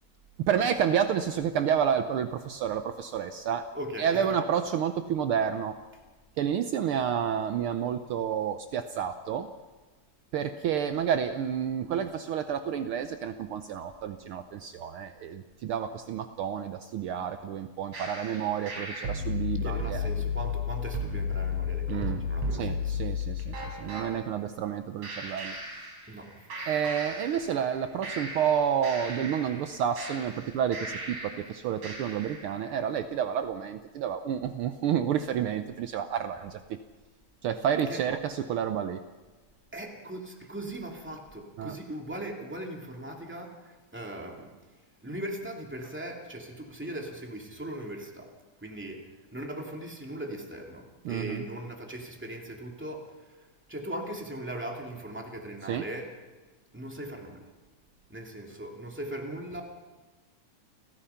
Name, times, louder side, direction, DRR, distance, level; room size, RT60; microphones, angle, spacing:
voice 1, 0.4-3.7 4.0-5.8 6.4-9.5 10.3-20.1 21.9-22.2 22.5-25.6 26.7-36.8 37.4-39.0 41.6-41.8 51.0-51.4 55.7-55.8, right 8 dB, 85° right, 9 dB, 1.2 m, -30 dB
voice 2, 3.7-4.3 19.6-22.9 26.1-26.5 37.9-38.0 39.7-44.5 45.0-48.3 48.6-49.0 49.3-56.1 56.7-57.4 58.1-59.6, right 1 dB, 5° right, 1 dB, 2.2 m, -39 dB
sound 1, 17.9-24.1 25.0-26.3 26.5-27.7 28.0-31.5 31.8-32.5, left 4 dB, 60° right, 5.3 m, -34 dB
29.5 x 15.5 x 5.7 m, 1.3 s
omnidirectional pair, 3.4 m